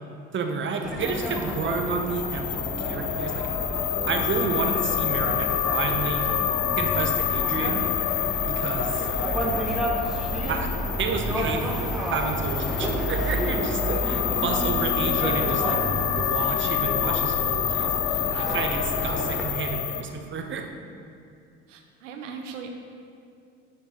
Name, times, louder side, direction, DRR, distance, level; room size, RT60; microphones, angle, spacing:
voice 1, 0.3-3.5 4.1-6.3 6.8-7.8 8.5-9.1 10.5-10.7 11.0-15.8 16.2-17.9 18.3-20.7, right 4 dB, 30° right, 4 dB, 0.8 m, -30 dB
sound 1, 0.8-19.5, right 1 dB, ahead, 1.0 m, -30 dB
sound 2, 1.0-20.0, left 11 dB, 65° left, 0.5 m, -28 dB
voice 2, 21.7-22.7, right 6 dB, 85° right, 4 dB, 0.7 m, -39 dB
11.0 x 4.6 x 3.0 m, 2.4 s
hypercardioid pair, 70°, 36 cm